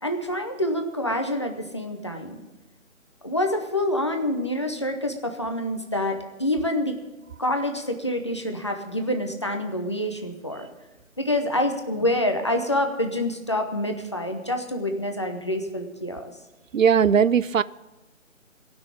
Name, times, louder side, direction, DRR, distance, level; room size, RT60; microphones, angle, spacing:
voice 1, 0.0-2.4 3.2-7.0 7.4-10.7 11.2-16.3, left 1 dB, 20° left, 4 dB, 0.7 m, -27 dB
voice 2, 16.7-17.6, right 7 dB, 75° right, 18 dB, 0.5 m, -18 dB
18.0 x 6.2 x 8.5 m, 1.0 s
figure-of-eight pair, 155°, 40 cm